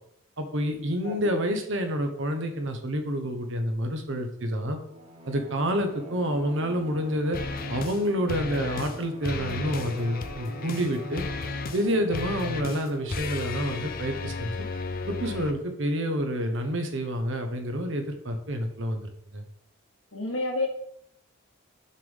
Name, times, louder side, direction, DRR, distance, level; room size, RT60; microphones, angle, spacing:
voice 1, 0.4-4.8 5.3-7.4 7.7-11.2 11.7-14.5 15.1-19.4, equal, 60° right, 6 dB, 0.9 m, -28 dB
Bowed string instrument, 4.9-13.4, right 1 dB, 25° right, 1.3 m, -44 dB
sound 1, 7.3-8.0 8.3-9.0 9.2-15.5, left 3 dB, 40° left, 0.5 m, -34 dB
voice 2, 20.1-20.7, left 2 dB, 65° left, 0 dB, 1.6 m, -29 dB
6.5 x 3.5 x 5.5 m, 0.73 s
head